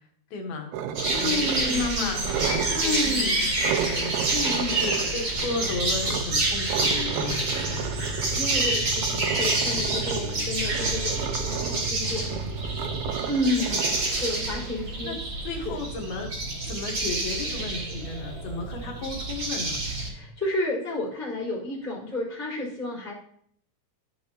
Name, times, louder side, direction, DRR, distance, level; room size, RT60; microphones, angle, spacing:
voice 1, 0.3-0.7 1.2-4.1 4.8-7.9 14.3-14.7 15.0-16.3 16.6-19.8, left 3 dB, 75° left, 2 dB, 3.2 m, -34 dB
sound 1, 0.7-1.9 2.2-2.9 3.6-6.2 6.7-14.7, right 9 dB, 80° right, 2.4 m, -33 dB
sound 2, 0.9-20.1, right 2 dB, 35° right, 2.6 m, -28 dB
voice 2, 1.1-2.2 2.7-3.4 4.3-4.8 8.3-12.9 13.2-15.1 15.6-15.8 20.1-23.1, left 2 dB, 5° left, -8 dB, 3.2 m, -31 dB
sound 3, 5.3-13.1, right 2 dB, 15° right, 1.0 m, -36 dB
13.5 x 6.4 x 2.8 m, 0.65 s
omnidirectional pair, 4.4 m